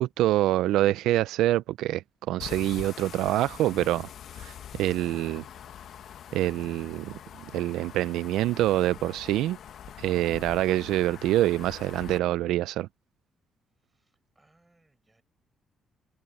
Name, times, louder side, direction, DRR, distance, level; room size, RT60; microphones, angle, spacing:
voice 1, 0.0-4.1 4.4-5.4 6.3-7.1 7.5-9.6 10.0-12.9, right 14 dB, 90° right, 0.3 m, -26 dB
sound 1, 2.4-12.2, left 9 dB, 65° left, 1.1 m, -44 dB
voice 2, 13.8-15.2, right 2 dB, 15° right, 7.2 m, -68 dB
cardioid pair, 90°, 0 cm